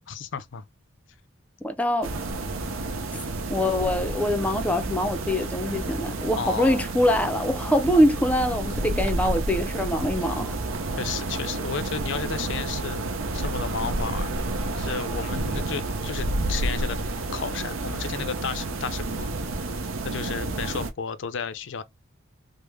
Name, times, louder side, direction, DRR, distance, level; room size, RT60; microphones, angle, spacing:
voice 1, 0.1-0.6 6.3-6.8 10.2-10.3 11.0-13.1 13.3-14.5 14.8-17.0 17.3-19.3 20.0-21.8, left 6 dB, 65° left, 0.4 m, -33 dB
voice 2, 1.6-2.1 3.5-10.6, left 1 dB, 5° left, 0.4 m, -24 dB
sound 1, 2.0-20.9, right 2 dB, 90° right, 0.6 m, -30 dB
3.4 x 2.0 x 3.1 m
head